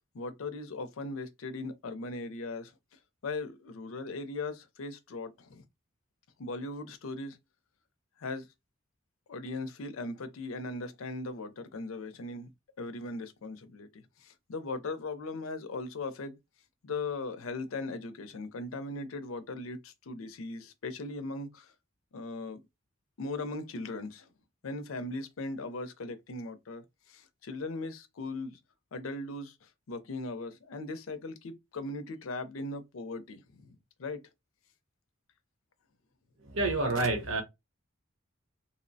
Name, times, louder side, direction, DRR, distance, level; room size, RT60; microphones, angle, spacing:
voice 1, 0.1-5.6 6.4-7.4 8.2-8.5 9.3-12.5 12.8-16.4 16.8-21.7 22.1-22.6 23.2-24.3 24.6-28.6 28.9-34.2, left 3 dB, 70° left, 0.5 m, -39 dB
voice 2, 36.5-37.4, right 2 dB, 65° right, 0.8 m, -28 dB
2.8 x 2.0 x 2.6 m
head